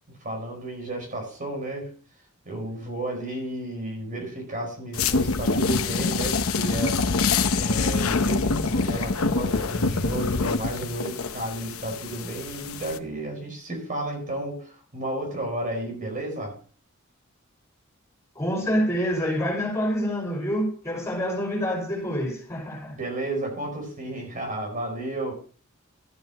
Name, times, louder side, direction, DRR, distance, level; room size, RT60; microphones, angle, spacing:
voice 1, 0.1-1.9 2.4-7.0 7.6-16.5 22.9-25.3, right 1 dB, 40° right, 5.0 m, -32 dB
sound 1, 4.9-13.0, left 4 dB, 80° left, 0.9 m, -25 dB
voice 2, 18.3-23.0, equal, 15° left, 5.6 m, -27 dB
14.0 x 10.5 x 3.0 m
head